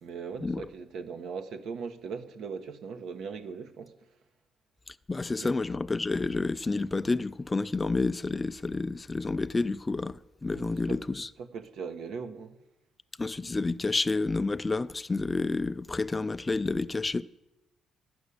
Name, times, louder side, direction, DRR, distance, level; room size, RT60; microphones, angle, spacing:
voice 1, 0.0-3.9 5.4-5.5 10.5-11.0 11.4-12.6, right 5 dB, 75° right, 1.0 m, -39 dB
voice 2, 5.1-11.3 13.2-17.2, left 3 dB, 20° left, 0.3 m, -29 dB
11.5 x 6.2 x 8.4 m
cardioid pair, 90°, 0 cm